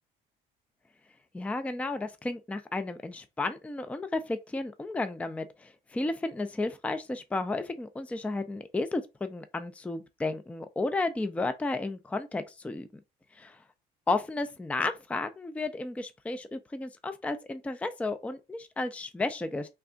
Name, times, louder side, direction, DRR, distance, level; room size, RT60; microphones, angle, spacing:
voice 1, 1.3-12.9 13.4-13.6 14.1-19.7, left 2 dB, 10° left, 0.4 m, -33 dB
3.4 x 2.3 x 3.8 m
cardioid pair, 110°, 17 cm